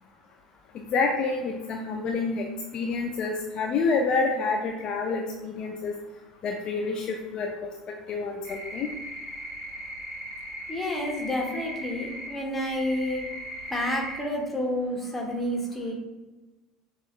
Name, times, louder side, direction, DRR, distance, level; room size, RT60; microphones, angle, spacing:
voice 1, 0.7-2.5 2.7-5.9 6.4-7.5 8.1-8.9, left 4 dB, 40° left, 2 dB, 0.4 m, -28 dB
sound 1, 8.4-12.3 12.6-14.2, right 1 dB, 55° right, 1.4 m, -38 dB
voice 2, 10.7-13.3 13.7-15.9, left 1 dB, 5° left, -1 dB, 1.1 m, -29 dB
6.1 x 2.4 x 2.9 m, 1.2 s
figure-of-eight pair, 65°, 2 cm